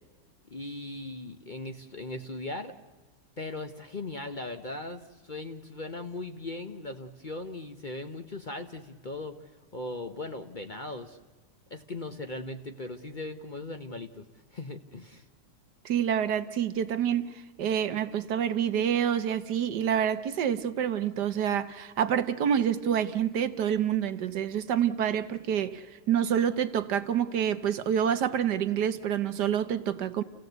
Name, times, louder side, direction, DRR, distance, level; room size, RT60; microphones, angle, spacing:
voice 1, 0.5-2.7 3.4-9.3 9.7-11.2 11.7-14.3 14.5-15.3, left 2 dB, 35° left, 0.9 m, -38 dB
voice 2, 15.8-30.2, right 9 dB, 80° right, 1.6 m, -27 dB
29.5 x 16.0 x 8.0 m
omnidirectional pair, 1.8 m